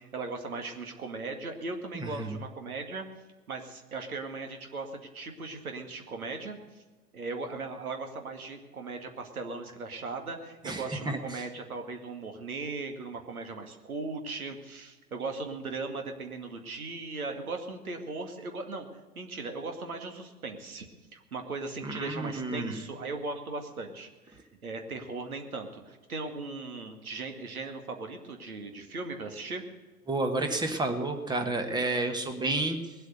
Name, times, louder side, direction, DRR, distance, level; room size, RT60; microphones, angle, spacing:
voice 1, 0.0-3.0 3.5-6.6 7.1-18.9 19.2-20.9 21.1-29.6, right 3 dB, 70° right, 5 dB, 2.3 m, -38 dB
voice 2, 1.9-2.3 10.6-11.4 21.8-22.8 30.1-32.9, right 2 dB, 10° right, 6 dB, 1.4 m, -31 dB
20.5 x 8.2 x 6.7 m, 1.3 s
figure-of-eight pair, 100°, 45 cm